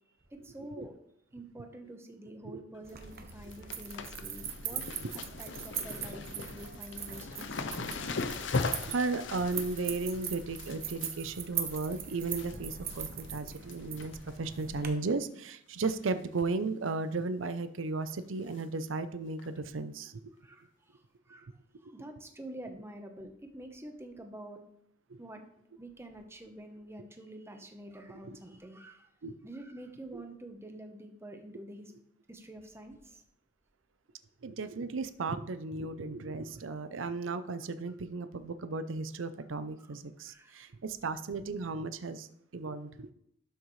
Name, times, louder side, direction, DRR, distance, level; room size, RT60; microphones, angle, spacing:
voice 1, 0.3-0.9 1.3-4.8 5.4-8.0 20.4-21.5 21.8-24.6 25.2-25.5 25.8-29.1 29.4-31.9 32.3-33.2 37.0-37.1 39.8-39.9 40.2-40.7, right 1 dB, 15° right, 5 dB, 1.0 m, -47 dB
sound 1, 2.7-3.1 3.3-12.5 12.9-13.3 13.6-14.5 14.8-14.9 15.9-16.1 16.4-16.5 16.9-17.0 18.5-18.6 19.4-19.5, left 4 dB, 65° left, 0.7 m, -39 dB
sound 2, 2.8-14.9, right 8 dB, 50° right, 1.0 m, -41 dB
voice 2, 8.0-8.4 8.9-20.2 21.8-21.9 25.1-25.2 29.2-29.3 34.4-42.3 42.5-43.1, right 3 dB, 85° right, 12 dB, 0.6 m, -35 dB
12.0 x 6.4 x 3.2 m, 0.73 s
head